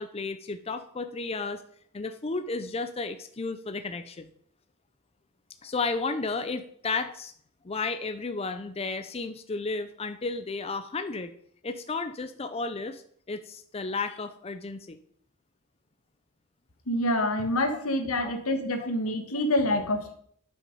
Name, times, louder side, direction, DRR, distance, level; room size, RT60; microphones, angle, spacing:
voice 1, 0.0-1.6 1.9-4.3 5.6-7.3 7.6-11.3 11.6-13.0 13.3-15.0 18.2-18.3 18.8-18.9, left 3 dB, 30° left, 9 dB, 0.5 m, -33 dB
voice 2, 16.9-20.1, left 1 dB, 85° left, 7 dB, 1.6 m, -27 dB
10.5 x 6.1 x 5.5 m, 0.63 s
head